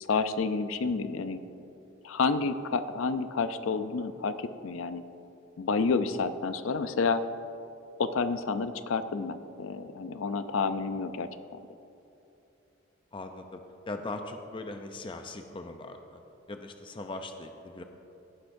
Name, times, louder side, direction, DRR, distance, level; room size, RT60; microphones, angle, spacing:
voice 1, 0.0-1.4 2.0-5.0 5.6-7.2 8.0-11.3, left 4 dB, 80° left, 11 dB, 0.5 m, -29 dB
voice 2, 13.1-13.6 13.9-16.2 16.5-17.8, left 2 dB, 25° left, 5 dB, 0.5 m, -40 dB
17.0 x 10.0 x 2.6 m, 2.9 s
head